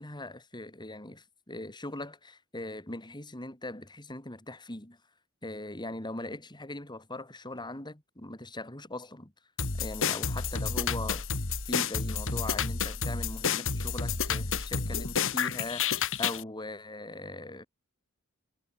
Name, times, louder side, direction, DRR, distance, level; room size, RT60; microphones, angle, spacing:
voice 1, 0.0-5.0 5.4-9.3 9.8-11.2 11.7-17.7, left 2 dB, 20° left, 3.1 m, -40 dB
sound 1, 9.6-16.4, left 6 dB, 60° left, 2.1 m, -30 dB
head